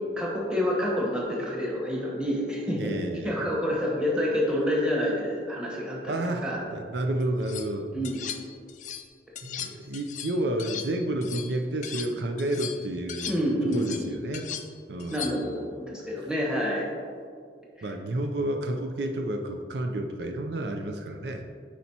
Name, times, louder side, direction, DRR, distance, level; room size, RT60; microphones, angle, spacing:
voice 1, 0.2-2.9 3.2-6.0 6.4-6.6 7.9-8.2 13.3-14.1 15.1-16.9, equal, 5° right, -4 dB, 1.2 m, -28 dB
voice 2, 2.8-3.4 6.1-8.0 9.4-14.5 14.9-15.6 17.8-21.4, right 1 dB, 75° right, 4 dB, 0.5 m, -31 dB
sound 1, 7.2-7.7 8.0-9.1 9.4-12.1 12.4-15.5, left 9 dB, 45° left, 0.4 m, -38 dB
10.0 x 4.3 x 2.8 m, 2.2 s
head